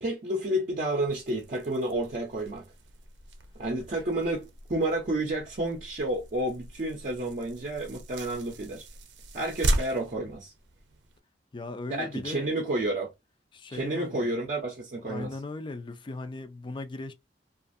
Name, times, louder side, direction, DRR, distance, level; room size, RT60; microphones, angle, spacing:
voice 1, 0.0-2.7 3.6-8.9 9.3-10.5 11.9-13.1 13.7-15.3, right 1 dB, 45° right, 0.5 m, -30 dB
sound 1, 1.1-11.2, right 1 dB, 85° right, 0.6 m, -37 dB
voice 2, 11.5-12.5 13.5-14.3 15.0-17.1, left 2 dB, 25° left, 0.4 m, -38 dB
2.5 x 2.4 x 2.5 m
head